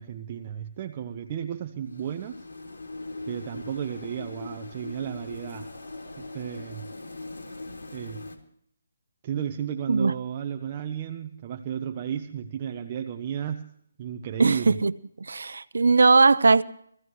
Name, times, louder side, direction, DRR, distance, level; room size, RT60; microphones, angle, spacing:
voice 1, 0.0-2.4 3.3-5.7 6.2-6.8 7.9-8.3 9.2-13.7 14.0-14.8, right 9 dB, 30° right, 0.8 m, -33 dB
sound 1, 1.8-8.4, left 2 dB, 75° left, 3.2 m, -40 dB
voice 2, 14.4-14.9 15.3-16.6, right 4 dB, 80° right, 0.6 m, -19 dB
22.0 x 16.0 x 3.2 m
hypercardioid pair, 160°, 0 cm